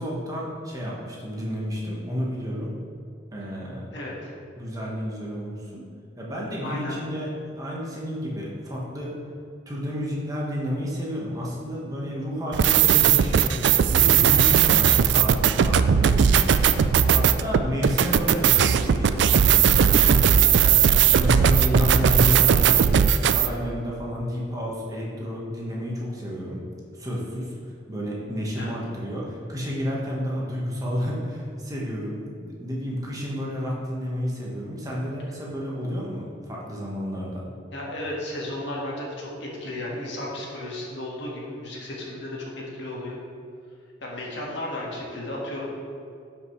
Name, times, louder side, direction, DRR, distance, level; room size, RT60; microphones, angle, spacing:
voice 1, 0.0-2.7 3.3-3.9 4.6-5.8 6.2-9.1 9.7-26.6 26.9-27.5 27.9-37.5, equal, 20° right, -4 dB, 1.4 m, -31 dB
voice 2, 3.9-4.3 6.6-7.0 28.6-28.7 37.7-43.2 44.0-45.6, left 1 dB, 70° left, -4 dB, 1.8 m, -34 dB
sound 1, 12.5-23.5, right 8 dB, 65° right, 0.3 m, -18 dB
12.0 x 5.7 x 3.2 m, 2.5 s
head